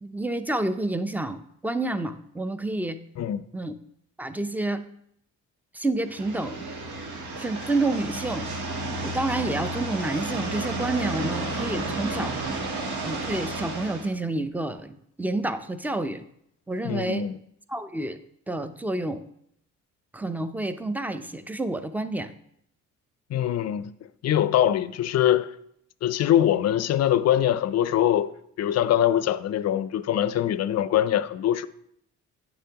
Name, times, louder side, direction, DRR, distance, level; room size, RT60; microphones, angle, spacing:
voice 1, 0.0-3.0 3.5-3.7 4.2-4.8 5.7-6.7 7.3-8.5 8.9-12.4 13.0-16.2 16.7-17.3 17.7-18.2 18.5-19.2 20.1-22.3, right 2 dB, 5° right, 0.5 m, -29 dB
sound 1, 6.1-14.1, right 2 dB, 75° right, 1.4 m, -32 dB
voice 2, 16.8-17.3 23.3-23.9 24.2-25.5 26.0-31.7, left 11 dB, 60° left, 0.5 m, -23 dB
9.2 x 6.9 x 2.9 m
cardioid pair, 90°, 30 cm